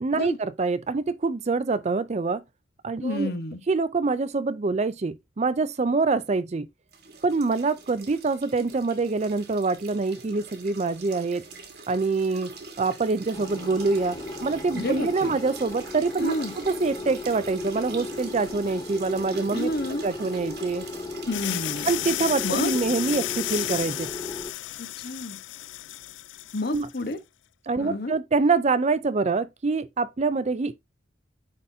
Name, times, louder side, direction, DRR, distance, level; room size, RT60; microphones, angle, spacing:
voice 1, 0.0-2.4 2.8-3.3 3.7-6.7 7.2-11.4 11.9-12.5 12.8-14.2 14.4-16.3 16.7-19.7 20.0-20.8 21.9-24.1 26.7-26.9 27.7-30.7, right 4 dB, 40° right, 0.5 m, -25 dB
voice 2, 3.0-3.6 14.7-15.4 16.2-16.5 19.5-20.0 21.3-21.9 22.4-22.8 24.8-25.4 26.5-27.2 27.8-28.1, left 1 dB, 60° left, 1.1 m, -30 dB
sound 1, 6.9-22.0, right 4 dB, 60° right, 1.4 m, -43 dB
sound 2, 13.3-24.5, left 3 dB, 20° left, 0.5 m, -37 dB
sound 3, 21.3-27.0, left 15 dB, 85° left, 0.3 m, -32 dB
9.7 x 3.9 x 2.7 m
head